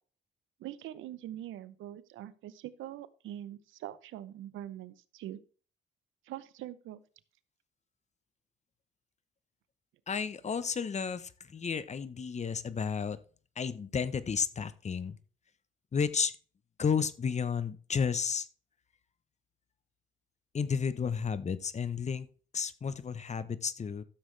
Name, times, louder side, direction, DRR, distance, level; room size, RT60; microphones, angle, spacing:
voice 1, 0.6-5.4 6.2-7.0, right 12 dB, 85° right, 16 dB, 0.7 m, -43 dB
voice 2, 10.1-13.2 13.6-15.2 15.9-16.3 16.8-18.5 20.5-22.3 22.5-24.0, left 6 dB, 35° left, 15 dB, 0.8 m, -32 dB
13.0 x 7.3 x 3.3 m, 0.41 s
cardioid pair, 90°, 20 cm